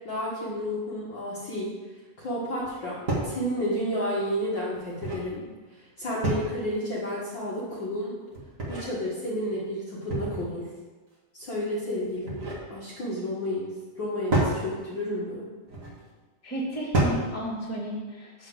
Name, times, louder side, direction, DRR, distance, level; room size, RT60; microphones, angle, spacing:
voice 1, 0.0-1.7 2.2-5.4 5.7-8.2 8.7-10.7 11.3-12.4 12.7-13.7 13.9-15.5, equal, 75° left, -7 dB, 1.0 m, -31 dB
sound 1, 2.6-2.7 3.1-3.4 4.7-5.3 6.2-6.7 8.3-8.9 10.1-10.6 12.0-12.7 14.3-14.6 15.7-16.0 16.9-17.3, right 2 dB, 85° right, 0.7 m, -28 dB
voice 2, 16.4-18.5, right 1 dB, 5° left, -6 dB, 1.3 m, -33 dB
6.9 x 6.3 x 7.5 m, 1.3 s
omnidirectional pair, 4.7 m